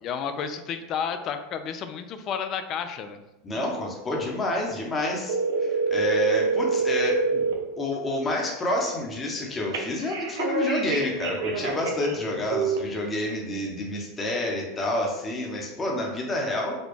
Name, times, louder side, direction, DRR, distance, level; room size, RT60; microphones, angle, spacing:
voice 1, 0.0-3.2, left 7 dB, 45° left, 9 dB, 0.4 m, -31 dB
voice 2, 3.4-7.4 7.8-16.7, left 1 dB, 25° left, -1 dB, 0.9 m, -28 dB
sound 1, 5.3-7.5 9.7-12.1 12.5-12.8, right 4 dB, 80° right, 0.5 m, -26 dB
4.1 x 2.2 x 3.2 m, 1.0 s
hypercardioid pair, 95°, 0 cm